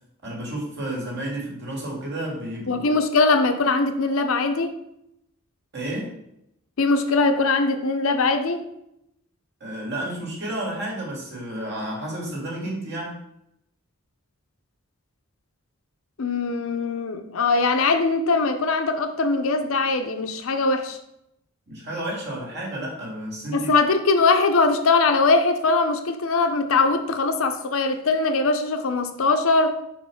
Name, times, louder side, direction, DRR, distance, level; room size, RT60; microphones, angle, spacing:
voice 1, 0.2-2.9 5.7-6.2 9.6-13.2 21.7-23.7, right 1 dB, 55° right, 1.9 m, -31 dB
voice 2, 2.7-4.7 6.8-8.7 16.2-21.0 23.5-29.7, left 3 dB, 70° left, 0.6 m, -21 dB
4.5 x 4.1 x 5.7 m
head